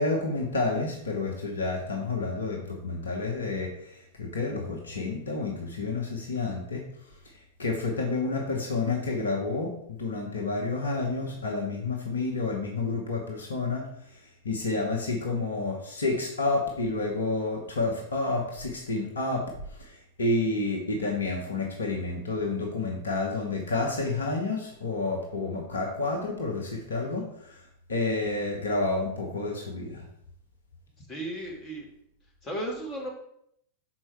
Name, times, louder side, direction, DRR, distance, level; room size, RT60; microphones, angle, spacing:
voice 1, 0.0-6.9 7.6-13.9 14.4-27.6 27.9-30.0, left 3 dB, 70° left, 1 dB, 1.0 m, -30 dB
voice 2, 31.1-31.9 32.4-33.1, right 1 dB, 30° left, 0 dB, 1.8 m, -35 dB
6.0 x 4.4 x 4.5 m, 0.73 s
figure-of-eight pair, 90°, 0 cm